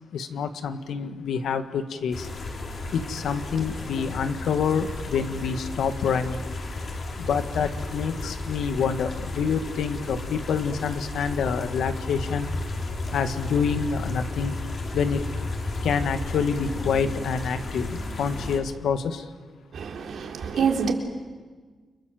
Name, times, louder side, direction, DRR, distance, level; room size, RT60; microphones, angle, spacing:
voice 1, 0.1-2.3 2.9-6.4 6.8-12.5 13.1-14.6 14.9-15.3 15.8-19.3, left 6 dB, 85° left, 1.9 m, -27 dB
sound 1, 2.1-18.6, left 2 dB, 50° left, 4.8 m, -33 dB
voice 2, 19.7-20.9, right 6 dB, 70° right, 3.8 m, -26 dB
30.0 x 24.5 x 7.9 m
cardioid pair, 115°, 0 cm